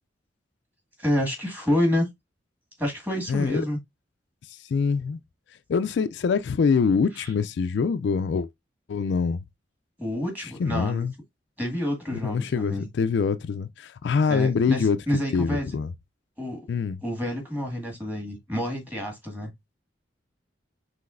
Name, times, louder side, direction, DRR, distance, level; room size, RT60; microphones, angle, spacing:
voice 1, 1.0-2.0 2.8-3.8 7.1-7.3 10.0-11.1 11.6-12.9 14.3-15.7 16.4-16.7 17.0-19.5, left 1 dB, 10° right, 1.7 m, -28 dB
voice 2, 3.3-3.6 4.7-5.2 5.7-8.5 8.9-9.4 10.6-11.1 12.1-15.0 15.3-15.9 16.7-17.0, left 5 dB, 70° left, 0.3 m, -24 dB
5.8 x 3.1 x 2.5 m
head